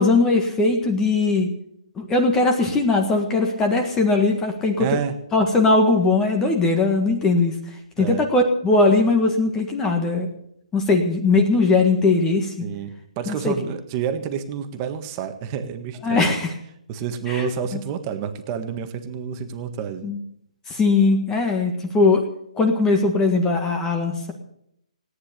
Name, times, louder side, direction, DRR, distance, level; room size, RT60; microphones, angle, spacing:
voice 1, 0.0-1.5 2.0-4.9 5.3-7.5 8.0-10.3 10.7-12.6 13.3-13.5 16.0-16.5 17.3-17.8 20.0-20.2 20.7-22.2 22.6-24.3, left 3 dB, 10° left, 4 dB, 1.6 m, -20 dB
voice 2, 4.8-5.1 8.0-8.2 12.6-16.3 16.9-20.1, right 8 dB, 25° right, 8 dB, 1.6 m, -29 dB
17.5 x 9.9 x 6.8 m, 0.73 s
hypercardioid pair, 160°, 4 cm